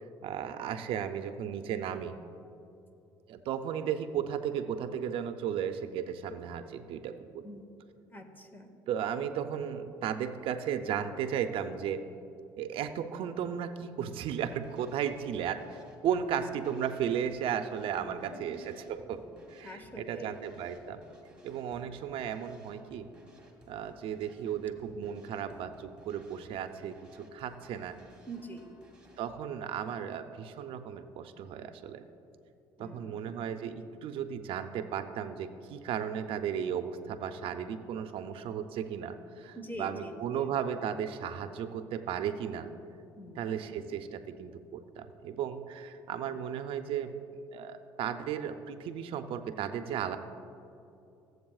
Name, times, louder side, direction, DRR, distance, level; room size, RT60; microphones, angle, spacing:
voice 1, 0.2-2.1 3.3-7.4 8.9-12.0 12.6-19.2 19.5-21.0 21.4-23.1 23.7-28.0 29.2-32.0 32.8-42.7 43.4-50.2, right 8 dB, 65° right, 9 dB, 0.5 m, -35 dB
voice 2, 8.1-8.7 18.0-18.7 19.6-20.4 28.3-28.7 32.8-33.5 39.5-40.5 43.2-43.8, equal, 20° left, 5 dB, 1.2 m, -45 dB
sound 1, 14.2-29.3, right 1 dB, 10° right, 2.2 m, -58 dB
15.5 x 8.0 x 2.4 m, 2.7 s
supercardioid pair, 80°, 10 cm